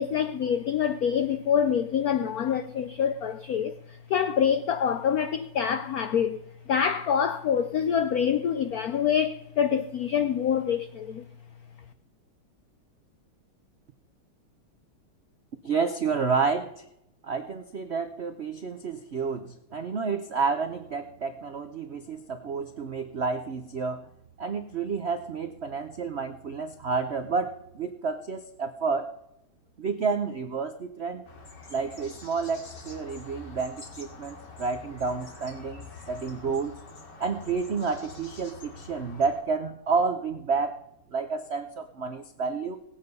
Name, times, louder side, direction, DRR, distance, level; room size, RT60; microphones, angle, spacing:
voice 1, 0.0-6.4 6.7-11.3, left 8 dB, 80° left, 0.8 m, -26 dB
voice 2, 15.6-16.8 17.2-24.1 24.4-29.1 29.8-31.2 31.7-36.7 37.2-40.7 41.1-42.8, right 5 dB, 80° right, 0.5 m, -30 dB
sound 1, 31.2-39.4, left 3 dB, 55° left, 3.0 m, -46 dB
18.0 x 8.8 x 5.4 m
omnidirectional pair, 2.3 m